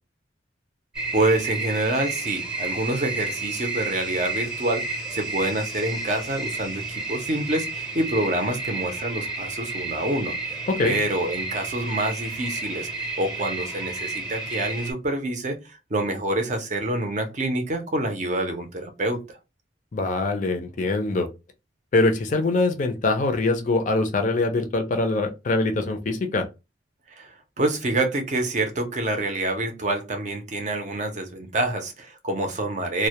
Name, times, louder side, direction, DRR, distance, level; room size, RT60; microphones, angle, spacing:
sound 1, 0.9-14.9, right 3 dB, 5° right, 0.7 m, -31 dB
voice 1, 1.1-10.3 10.8-12.9 13.2-19.2 27.2-33.1, right 1 dB, 40° right, 6 dB, 0.5 m, -27 dB
voice 2, 19.9-21.3 21.9-26.5, left 2 dB, 40° left, 5 dB, 0.4 m, -23 dB
2.1 x 2.1 x 2.8 m, 0.26 s
head